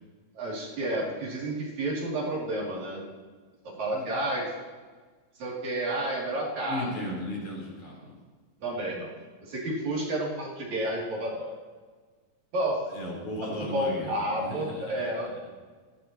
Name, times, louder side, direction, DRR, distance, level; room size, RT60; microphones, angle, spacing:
voice 1, 0.3-3.0 3.6-4.5 5.4-7.0 8.6-9.1 9.4-11.6 12.5-12.8 13.5-15.3, right 1 dB, 55° right, -5 dB, 4.2 m, -31 dB
voice 2, 3.7-4.1 6.6-8.2 12.9-15.0, left 1 dB, 55° left, -3 dB, 5.3 m, -36 dB
18.0 x 16.5 x 3.0 m, 1.4 s
omnidirectional pair, 3.9 m